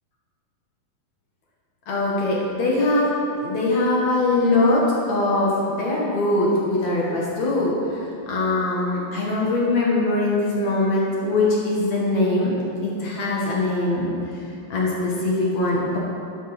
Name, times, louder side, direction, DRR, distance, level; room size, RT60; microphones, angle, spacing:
voice 1, 1.9-3.1 3.4-14.4 14.7-16.0, left 2 dB, 60° left, -4 dB, 2.7 m, -22 dB
12.5 x 7.3 x 5.9 m, 2.6 s
omnidirectional pair, 3.8 m